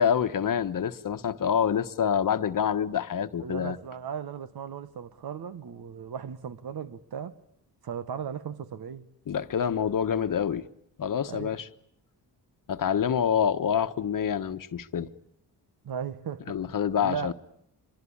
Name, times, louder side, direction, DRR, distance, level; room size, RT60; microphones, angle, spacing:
voice 1, 0.0-3.8 9.3-10.6 11.0-11.7 12.7-15.1 16.5-17.3, left 8 dB, 55° left, 1.2 m, -26 dB
voice 2, 3.4-7.4 7.8-9.1 11.3-11.6 15.8-16.6 17.0-17.3, right 7 dB, 65° right, 1.5 m, -36 dB
25.5 x 22.5 x 8.7 m
cardioid pair, 85°, 40 cm